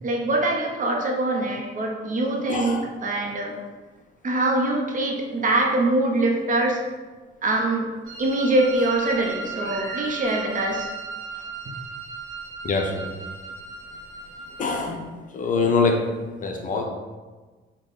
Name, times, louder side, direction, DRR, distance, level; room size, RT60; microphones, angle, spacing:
voice 1, 0.0-3.6 4.2-6.8 7.4-7.9 8.2-10.9, right 2 dB, 40° right, 0 dB, 0.7 m, -23 dB
voice 2, 2.5-2.9 12.6-13.0 14.6-15.1 15.3-16.0 16.4-16.8, left 4 dB, 40° left, 1 dB, 0.5 m, -23 dB
Wind instrument woodwind instrument, 8.0-14.8, right 4 dB, 85° right, 0.9 m, -36 dB
3.8 x 2.2 x 3.5 m, 1.3 s
cardioid pair, 90°, 20 cm